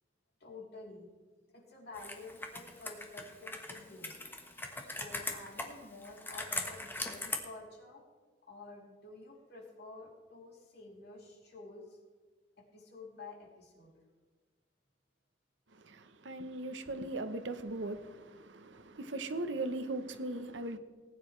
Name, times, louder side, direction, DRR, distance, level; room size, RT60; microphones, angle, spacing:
voice 1, 0.4-1.1 1.5-4.2 4.8-8.0 8.5-12.0 12.6-14.0, left 3 dB, 65° left, 3.3 m, -50 dB
Computer keyboard, 1.9-7.4, left 2 dB, 10° left, 1.3 m, -41 dB
voice 2, 15.7-20.8, right 2 dB, 90° right, 1.0 m, -39 dB
19.0 x 9.6 x 3.3 m
head